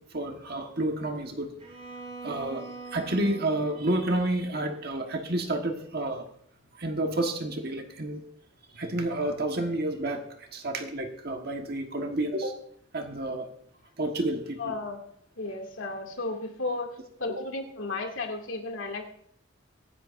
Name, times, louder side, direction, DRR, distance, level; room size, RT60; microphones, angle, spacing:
voice 1, 0.1-1.5 2.2-6.2 6.8-8.2 8.7-12.5 12.9-13.5 14.0-14.8, right 1 dB, 50° right, 3 dB, 1.4 m, -30 dB
Bowed string instrument, 1.6-5.6, right 3 dB, 30° right, 5.4 m, -45 dB
voice 2, 14.6-15.0 15.4-16.9 17.2-19.1, left 3 dB, 75° left, 3 dB, 2.4 m, -33 dB
23.5 x 11.0 x 2.6 m, 0.69 s
head